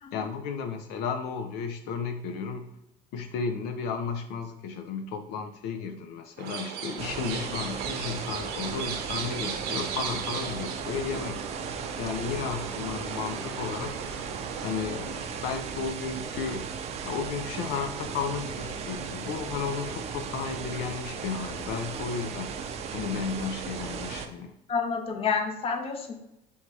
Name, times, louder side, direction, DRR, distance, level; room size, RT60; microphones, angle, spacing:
voice 1, 0.1-2.7 3.1-11.4 12.0-14.0 14.6-16.7 17.0-22.5 22.9-24.5, left 5 dB, 75° left, 6 dB, 0.5 m, -33 dB
sound 1, 6.4-15.3, right 6 dB, 75° right, 0.7 m, -37 dB
sound 2, 7.0-24.3, right 6 dB, 40° right, 0.4 m, -36 dB
voice 2, 24.7-26.1, left 5 dB, 35° left, 5 dB, 0.6 m, -29 dB
3.5 x 2.7 x 4.5 m, 0.85 s
cardioid pair, 130°, 17 cm